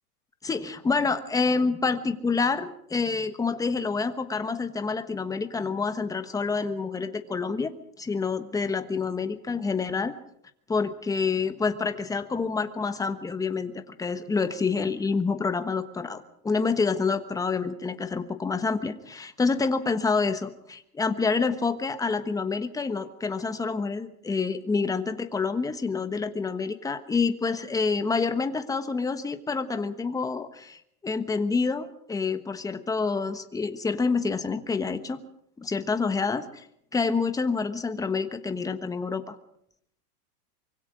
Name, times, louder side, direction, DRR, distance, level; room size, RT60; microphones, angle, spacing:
voice 1, 0.4-10.1 10.7-35.2 35.6-36.7 36.9-39.4, left 4 dB, 5° left, 9 dB, 1.2 m, -28 dB
25.0 x 23.0 x 5.0 m, 0.71 s
hypercardioid pair, 140°, 46 cm